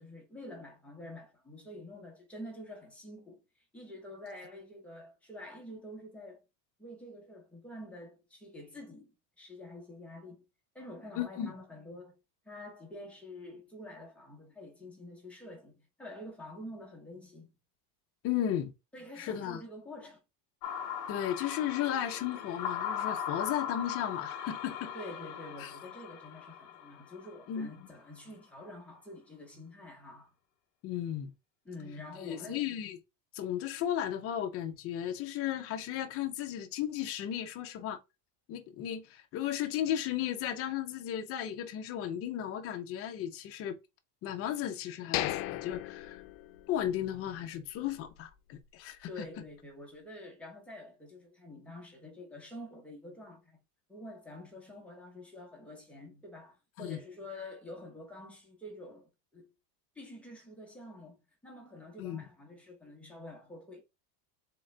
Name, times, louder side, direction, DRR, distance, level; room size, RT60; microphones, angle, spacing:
voice 1, 0.0-6.4 6.8-10.5 10.7-12.2 12.4-17.5 18.9-20.2 24.9-30.3 31.6-32.6 49.1-53.6 53.9-59.5 59.9-63.8, left 1 dB, 5° left, 1.0 m, -47 dB
voice 2, 11.2-11.5 18.2-18.7 19.2-19.6 21.1-24.9 25.6-25.7 27.5-27.9 30.8-31.3 32.2-33.0 33.3-38.0 38.5-43.7 44.2-46.2 46.7-49.1 56.8-57.0 62.0-62.2, left 10 dB, 30° left, 0.6 m, -35 dB
sound 1, 20.6-27.7, left 8 dB, 50° left, 1.0 m, -39 dB
sound 2, 45.1-47.1 47.4-47.5 48.0-48.2, left 15 dB, 70° left, 0.6 m, -36 dB
3.8 x 3.7 x 3.2 m
cardioid pair, 165°, 49 cm